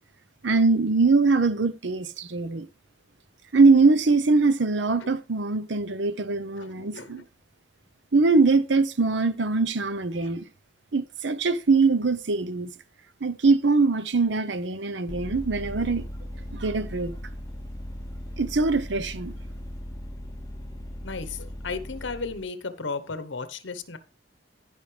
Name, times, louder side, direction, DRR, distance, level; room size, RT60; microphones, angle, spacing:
voice 1, 0.4-2.7 3.5-7.2 8.1-10.5 10.9-12.7 13.2-16.0 16.5-17.1 18.4-19.3, right 3 dB, 70° right, 0.8 m, -22 dB
voice 2, 6.6-7.2 10.2-10.4 21.0-24.0, left 4 dB, 75° left, 1.0 m, -35 dB
Vehicle, 15.1-22.4, equal, 20° left, 0.8 m, -38 dB
15.0 x 5.4 x 3.3 m
head